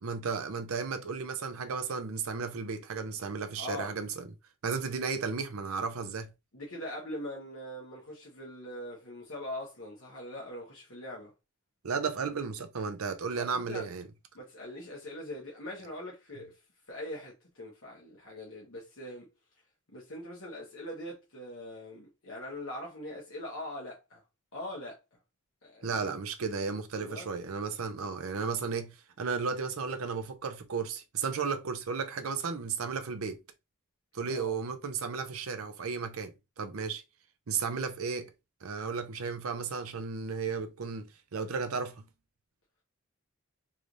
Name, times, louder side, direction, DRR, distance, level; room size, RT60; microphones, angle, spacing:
voice 1, 0.0-4.3 4.6-6.3 11.8-14.0 25.8-33.4 34.1-37.0 37.5-38.3 38.6-42.0, right 5 dB, 80° right, 0.6 m, -34 dB
voice 2, 3.6-4.0 6.5-11.3 13.3-13.9 14.3-16.6 16.9-19.3 19.9-24.2 24.5-25.0 25.6-26.1 26.9-27.3 34.3-34.6, left 1 dB, 65° left, 1.2 m, -42 dB
3.2 x 3.2 x 2.6 m
head